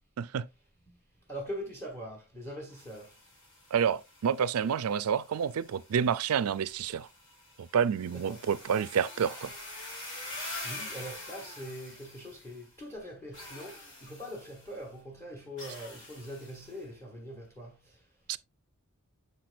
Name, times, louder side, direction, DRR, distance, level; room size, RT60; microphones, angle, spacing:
voice 1, 1.3-3.1 8.1-8.5 10.2-18.0, equal, 10° left, 1.4 m, -42 dB
sound 1, 2.7-12.7 13.3-14.8 15.6-16.8, left 2 dB, 60° left, 3.4 m, -46 dB
voice 2, 3.7-7.1 7.6-9.5 18.3-18.4, right 7 dB, 80° right, 0.4 m, -29 dB
6.7 x 5.9 x 2.5 m
head